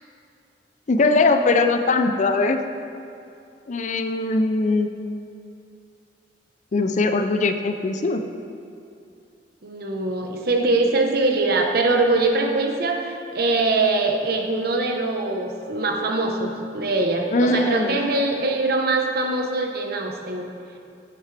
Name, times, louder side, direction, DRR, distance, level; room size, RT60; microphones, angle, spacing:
voice 1, 0.9-2.6 3.7-4.9 6.7-8.2 17.3-18.0, left 3 dB, 45° left, 7 dB, 0.5 m, -20 dB
voice 2, 9.6-20.5, right 2 dB, 60° right, 2 dB, 1.0 m, -22 dB
10.5 x 8.7 x 3.4 m, 2.5 s
head